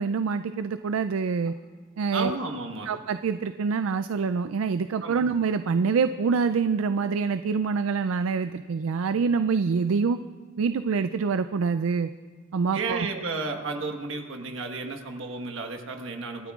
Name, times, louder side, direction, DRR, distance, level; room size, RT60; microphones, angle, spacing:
voice 1, 0.0-1.5 2.0-2.3 2.9-10.2 10.6-12.1 12.5-13.1, right 5 dB, 85° right, 11 dB, 0.4 m, -26 dB
voice 2, 2.1-2.9 5.0-5.2 12.7-16.5, right 3 dB, 70° right, 4 dB, 1.4 m, -32 dB
27.0 x 12.0 x 2.4 m, 1.5 s
head